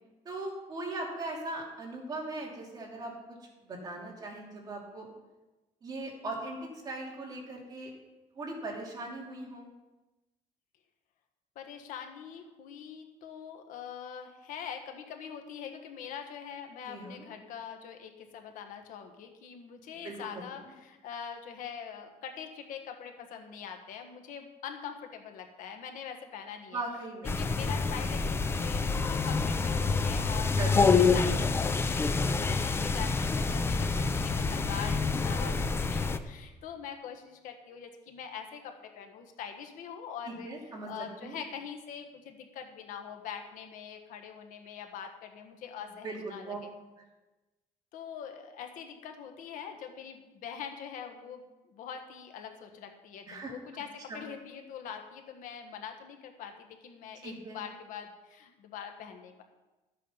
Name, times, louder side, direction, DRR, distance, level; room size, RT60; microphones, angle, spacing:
voice 1, 0.2-5.1 5.8-7.9 8.3-9.7 16.9-17.2 20.0-20.4 26.7-27.4 30.5-30.8 40.3-40.9 41.2-41.4 46.0-46.6 53.3-53.5 54.1-54.3 57.2-57.6, right 2 dB, 30° right, -2 dB, 2.8 m, -39 dB
voice 2, 11.5-26.8 27.3-40.5 40.8-46.7 47.9-59.4, left 7 dB, 75° left, 5 dB, 1.5 m, -43 dB
sound 1, 27.2-36.2, left 4 dB, 15° left, 0.5 m, -27 dB
13.0 x 8.5 x 5.7 m, 1.1 s
cardioid pair, 180°, 14 cm